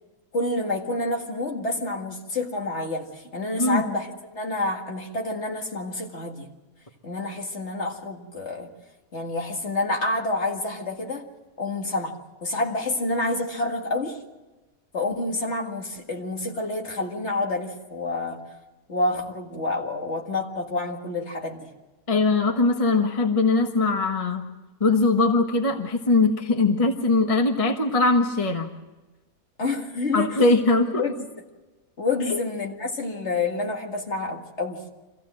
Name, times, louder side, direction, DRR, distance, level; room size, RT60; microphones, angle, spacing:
voice 1, 0.3-6.5 7.0-8.7 9.1-11.3 11.6-14.2 14.9-18.5 18.9-21.7 29.6-30.4 31.0-31.1 32.0-34.8, left 2 dB, 50° left, 2 dB, 2.3 m, -28 dB
voice 2, 22.1-24.4 24.8-28.7 30.1-31.1 32.3-32.4, left 3 dB, 25° left, 4 dB, 1.2 m, -21 dB
25.0 x 15.5 x 7.6 m, 1.2 s
omnidirectional pair, 1.5 m